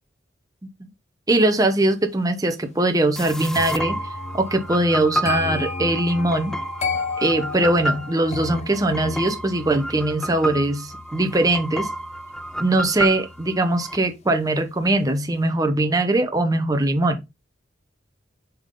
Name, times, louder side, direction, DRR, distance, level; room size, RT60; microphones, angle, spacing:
voice 1, 1.3-4.0 4.3-6.6 7.2-11.9 12.6-17.2, right 2 dB, 20° right, 0.8 m, -21 dB
sound 1, 3.2-14.0, right 1 dB, 5° left, 0.3 m, -31 dB
sound 2, 3.5-14.5 14.8-15.2, left 4 dB, 35° left, 0.8 m, -34 dB
7.0 x 3.7 x 3.7 m
head